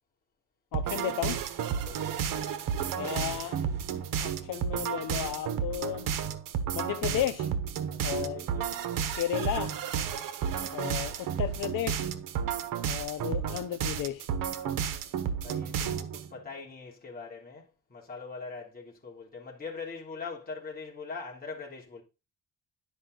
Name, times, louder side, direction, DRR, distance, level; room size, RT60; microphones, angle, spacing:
voice 1, 0.7-1.4 2.9-3.6 4.2-6.1 6.7-7.5 8.0-8.4 9.1-9.8 10.7-12.1 12.8-14.3, left 11 dB, 80° left, 0.9 m, -33 dB
sound 1, 0.7-16.3, right 8 dB, 80° right, 1.1 m, -32 dB
voice 2, 7.9-8.7 10.0-10.3 15.4-22.0, left 4 dB, 30° left, 3.2 m, -42 dB
10.5 x 5.4 x 3.9 m
cardioid pair, 140°, 32 cm